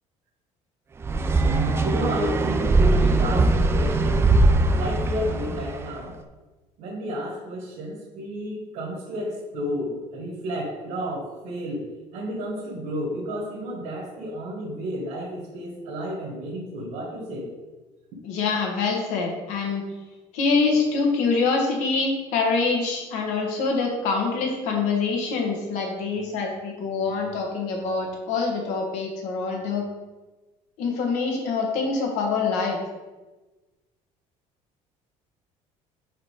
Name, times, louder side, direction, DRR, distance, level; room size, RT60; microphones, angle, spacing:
sound 1, 1.0-5.9, right 2 dB, 20° right, 0.4 m, -21 dB
voice 1, 1.4-4.2 4.7-6.1 6.8-11.9 12.1-17.5, equal, 65° right, -4 dB, 1.5 m, -31 dB
voice 2, 18.2-19.8 20.3-29.8 30.8-32.8, left 4 dB, 75° left, 1 dB, 1.5 m, -25 dB
4.9 x 4.4 x 4.8 m, 1.2 s
cardioid pair, 145°, 13 cm